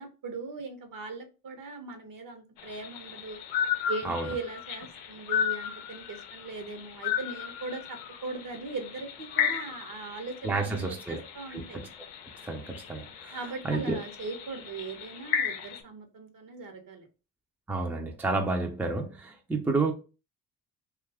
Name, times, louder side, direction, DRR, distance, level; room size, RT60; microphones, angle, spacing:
voice 1, 0.0-3.4 3.9-11.8 13.3-17.1, right 3 dB, 50° right, 0.9 m, -39 dB
sound 1, 2.6-15.8, left 8 dB, 80° left, 0.6 m, -35 dB
voice 2, 10.4-11.2 11.5-11.9 12.4-13.4 13.6-14.0 17.7-19.9, right 3 dB, 5° right, 0.5 m, -30 dB
2.6 x 2.4 x 3.3 m
hypercardioid pair, 55°, 43 cm